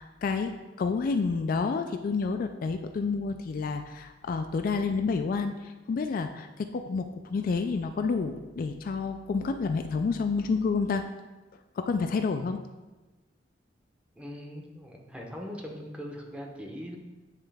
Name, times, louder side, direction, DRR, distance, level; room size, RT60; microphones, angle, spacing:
voice 1, 0.0-11.0 11.8-12.6, left 4 dB, 50° left, 7 dB, 0.3 m, -29 dB
voice 2, 14.2-17.0, equal, 5° right, 0 dB, 0.8 m, -40 dB
9.1 x 3.3 x 3.4 m, 1.2 s
head